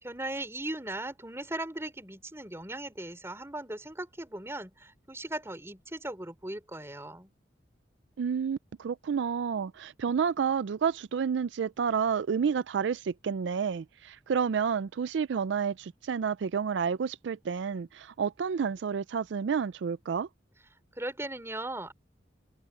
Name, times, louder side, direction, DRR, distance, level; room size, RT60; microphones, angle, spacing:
voice 1, 0.0-7.3 20.9-21.9, right 1 dB, 15° right, 3.8 m, -38 dB
voice 2, 8.2-20.3, right 6 dB, 75° right, 0.4 m, -30 dB
open air
head